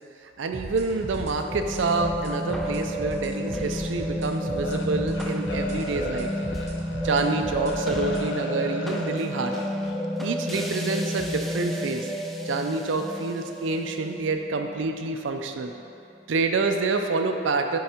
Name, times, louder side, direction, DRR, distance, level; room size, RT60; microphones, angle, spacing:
voice 1, 0.4-6.3 7.0-9.5 10.2-12.1 12.4-15.7 16.3-17.8, right 3 dB, 85° right, 5 dB, 0.5 m, -27 dB
sound 1, 0.5-8.3, right 1 dB, 35° right, 0.9 m, -38 dB
sound 2, 1.2-15.6, equal, ahead, 0.3 m, -31 dB
sound 3, 4.6-10.0 10.5-10.7, left 3 dB, 65° left, 0.6 m, -36 dB
7.7 x 4.7 x 4.3 m, 2.7 s
head